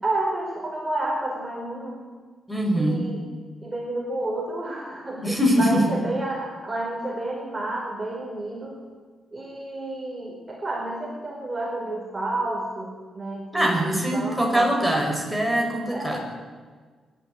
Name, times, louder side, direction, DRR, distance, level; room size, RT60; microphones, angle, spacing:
voice 1, 0.0-2.0 2.7-3.2 3.6-8.8 9.3-14.8 15.9-16.2, right 2 dB, 20° right, -1 dB, 4.5 m, -30 dB
voice 2, 2.5-3.0 5.2-5.8 13.5-16.2, equal, ahead, 1 dB, 6.1 m, -22 dB
25.0 x 12.0 x 9.7 m, 1.5 s
cardioid pair, 105°, 0 cm